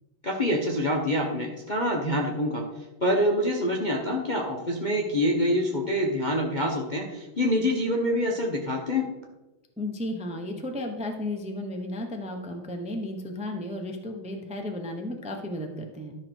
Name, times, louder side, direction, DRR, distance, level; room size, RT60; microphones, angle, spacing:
voice 1, 0.2-2.6 3.0-9.1, equal, 30° left, 0 dB, 0.8 m, -26 dB
voice 2, 9.8-16.1, left 1 dB, 10° right, 3 dB, 0.4 m, -34 dB
12.5 x 6.1 x 4.5 m, 1.0 s
omnidirectional pair, 2.3 m